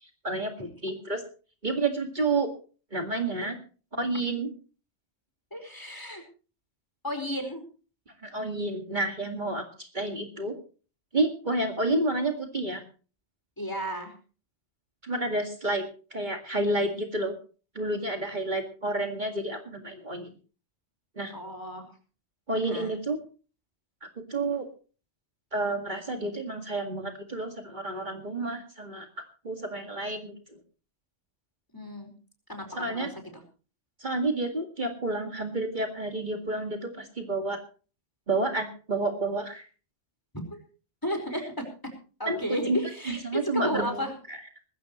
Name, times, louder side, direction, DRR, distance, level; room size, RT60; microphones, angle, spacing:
voice 1, 0.0-1.2 1.6-2.5 2.9-3.6 3.9-4.5 8.2-10.5 11.1-12.8 15.0-15.8 16.1-17.3 17.8-20.3 21.2-21.3 22.5-23.2 24.3-24.7 25.5-29.1 29.4-30.6 32.7-33.1 34.0-37.6 38.3-39.7 41.3-41.4 42.3-42.4 42.7-42.8 43.1-44.0 44.3-44.4, right 2 dB, 45° right, 4 dB, 2.2 m, -30 dB
voice 2, 5.5-6.2 7.0-7.6 13.6-14.1 21.3-21.9 22.7-22.9 31.7-32.1 32.5-33.4 41.0-41.7 42.2-44.1, equal, 20° left, 4 dB, 4.8 m, -33 dB
20.0 x 16.0 x 3.1 m, 0.37 s
omnidirectional pair, 1.1 m